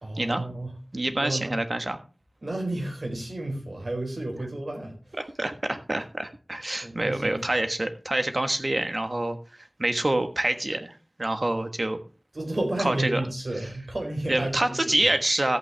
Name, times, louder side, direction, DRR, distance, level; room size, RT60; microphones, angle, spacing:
voice 1, 0.0-0.7 1.2-1.5 2.4-5.2 6.8-7.4 12.3-14.9, right 1 dB, 75° right, 2 dB, 4.3 m, -31 dB
voice 2, 0.9-2.0 5.2-12.0 12.8-13.2 13.6-13.7 14.3-15.6, right 1 dB, 50° right, 8 dB, 1.4 m, -27 dB
14.0 x 8.5 x 3.4 m, 0.35 s
wide cardioid pair, 55°, 0 cm